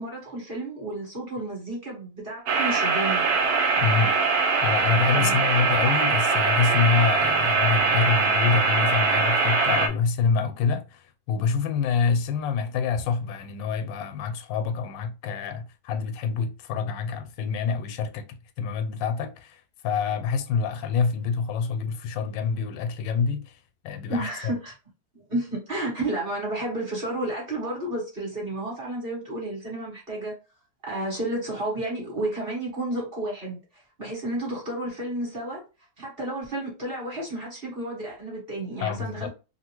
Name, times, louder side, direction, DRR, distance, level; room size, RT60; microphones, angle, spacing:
voice 1, 0.0-3.2 5.1-5.5 24.1-24.7 25.1-30.3 30.8-33.6 34.0-35.6 36.0-39.3, right 1 dB, 35° right, 1.2 m, -31 dB
sound 1, 2.5-9.9, right 4 dB, 70° right, 0.9 m, -22 dB
voice 2, 3.8-4.1 4.6-23.6 23.8-24.5 38.8-39.3, left 5 dB, 85° left, 1.3 m, -26 dB
2.9 x 2.7 x 2.9 m
omnidirectional pair, 2.0 m